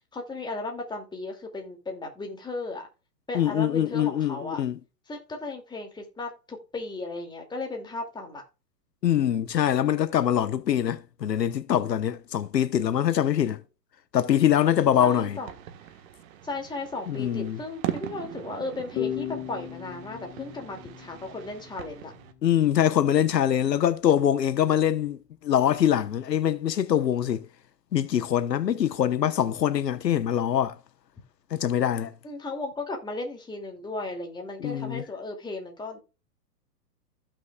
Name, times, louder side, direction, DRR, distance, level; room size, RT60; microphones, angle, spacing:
voice 1, 0.1-2.9 3.3-4.6 5.1-8.4 15.0-15.5 16.4-22.1 32.2-36.0, left 2 dB, 10° left, 2.4 m, -35 dB
voice 2, 3.3-4.8 9.0-13.6 14.1-15.4 17.1-17.6 22.4-27.5 27.9-30.8 31.5-32.1 34.6-35.0, left 10 dB, 85° left, 1.0 m, -24 dB
sound 1, 14.5-22.3, right 12 dB, 55° right, 1.4 m, -40 dB
sound 2, 19.0-22.4, left 11 dB, 45° left, 1.7 m, -36 dB
15.0 x 6.3 x 2.3 m
hypercardioid pair, 130°, 48 cm